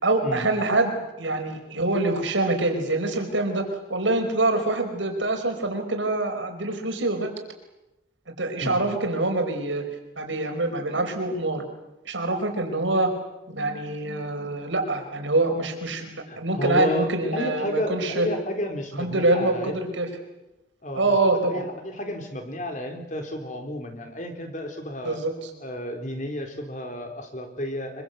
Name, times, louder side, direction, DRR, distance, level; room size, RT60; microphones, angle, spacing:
voice 1, 0.0-3.6 3.9-7.3 8.4-9.8 10.2-11.6 12.0-13.1 13.5-18.3 19.0-20.1 20.9-21.6 25.0-25.5, right 2 dB, 80° right, 5 dB, 4.9 m, -25 dB
voice 2, 16.3-19.9 20.8-25.2 25.6-28.0, equal, 40° left, 5 dB, 4.0 m, -31 dB
25.5 x 23.5 x 8.2 m, 0.96 s
head